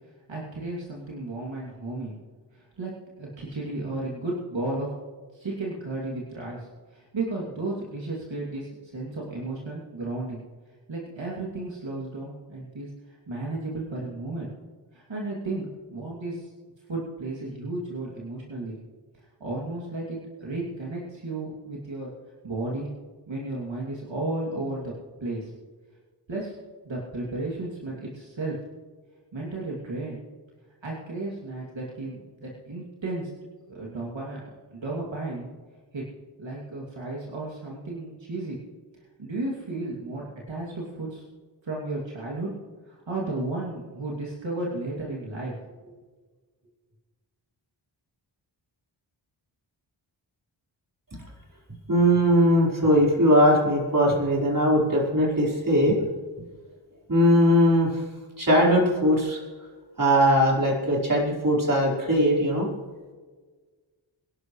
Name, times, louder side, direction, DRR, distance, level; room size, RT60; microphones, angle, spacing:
voice 1, 0.3-2.2 2.5-2.9 3.2-4.9 5.3-10.4 10.9-12.9 13.3-14.5 14.9-16.5 16.9-18.8 19.1-22.1 22.4-22.9 23.3-24.9 25.2-25.5 26.3-26.6 26.8-28.6 29.3-30.2 30.8-33.3 33.7-34.4 34.7-35.5 35.9-36.0 36.4-38.6 39.2-41.2 41.6-42.5 42.9-46.0, right 2 dB, 75° right, -4 dB, 2.8 m, -33 dB
voice 2, 51.9-56.0 57.1-57.9 58.4-59.4 60.0-62.7, equal, 45° right, -3 dB, 4.6 m, -20 dB
24.5 x 11.5 x 3.2 m, 1.4 s
wide cardioid pair, 75°, 46 cm